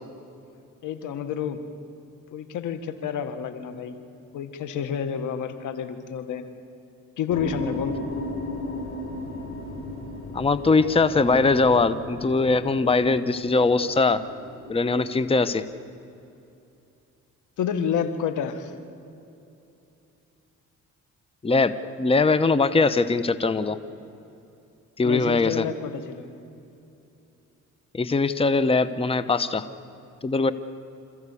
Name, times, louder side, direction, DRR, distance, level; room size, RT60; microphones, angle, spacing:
voice 1, 0.8-1.6 2.3-4.0 4.3-6.5 7.2-8.0 17.6-18.7 25.0-26.3, left 7 dB, 85° left, 10 dB, 1.7 m, -29 dB
sound 1, 7.3-15.7, left 1 dB, 45° left, 7.3 m, -36 dB
voice 2, 10.3-14.2 14.7-15.6 21.4-21.7 22.0-23.8 25.0-25.6 27.9-29.7 30.2-30.5, left 3 dB, 20° left, 13 dB, 0.9 m, -21 dB
27.0 x 14.5 x 8.5 m, 2.8 s
cardioid pair, 90°, 30 cm